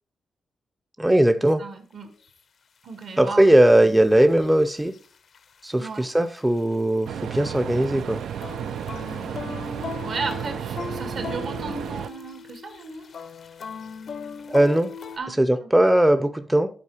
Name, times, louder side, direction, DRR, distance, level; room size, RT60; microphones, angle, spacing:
voice 1, 1.0-1.6 3.2-4.9 5.6-8.2 14.5-14.9 15.3-16.7, right 1 dB, 10° right, 10 dB, 0.5 m, -19 dB
voice 2, 1.6-2.1 2.8-3.4 5.8-6.1 9.2-9.3 10.0-13.1 15.2-15.7, right 4 dB, 70° right, 6 dB, 1.7 m, -35 dB
sound 1, 2.2-2.3 3.0-3.1 3.9-5.1 5.3-5.6 5.9-7.5 7.8-15.2, left 6 dB, 60° left, 0.5 m, -38 dB
sound 2, 7.1-12.1, right 9 dB, 90° right, 0.3 m, -33 dB
8.5 x 4.3 x 4.8 m, 0.43 s
cardioid pair, 105°, 0 cm